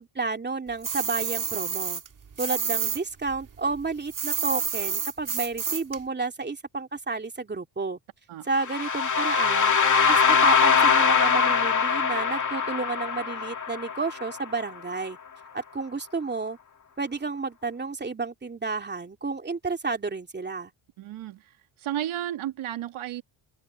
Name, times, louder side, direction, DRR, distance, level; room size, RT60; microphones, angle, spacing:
voice 1, 0.0-2.0 2.4-8.0 8.4-9.7 10.1-15.2 15.5-16.6 17.0-20.7, right 4 dB, 20° right, 2.8 m, -31 dB
sound 1, 0.8-3.0 3.3-6.0, right 6 dB, 40° right, 2.9 m, -29 dB
sound 2, 8.6-14.6, left 6 dB, 40° left, 2.3 m, -22 dB
voice 2, 21.0-23.2, right 12 dB, 80° right, 2.8 m, -33 dB
open air
cardioid pair, 105°, 48 cm